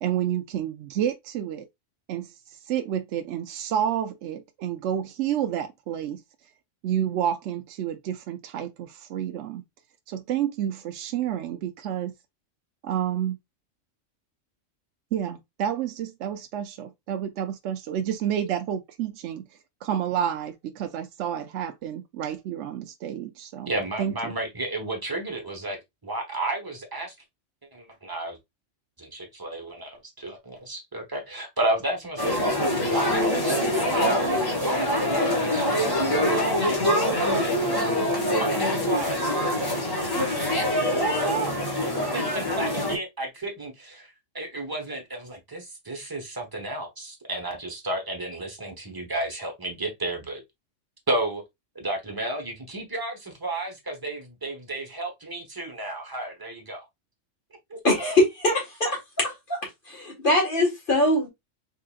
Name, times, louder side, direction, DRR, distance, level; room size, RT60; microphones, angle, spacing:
voice 1, 0.0-1.7 2.1-2.3 2.7-6.2 6.8-9.6 10.1-12.1 12.8-13.4 15.1-19.4 19.8-23.7 24.0-24.3, right 10 dB, 70° right, 0.9 m, -29 dB
voice 2, 23.6-25.8 26.0-27.1 27.7-28.4 29.0-32.3 32.8-37.5 38.4-39.6 40.8-50.4 51.1-51.4 51.7-56.8 57.7-57.8, right 2 dB, 20° right, 1.0 m, -32 dB
sound 1, 32.2-43.0, left 1 dB, 20° left, 1.4 m, -24 dB
voice 3, 57.8-59.6 59.9-61.3, left 1 dB, 45° left, 1.8 m, -23 dB
3.8 x 3.8 x 2.4 m
omnidirectional pair, 1.3 m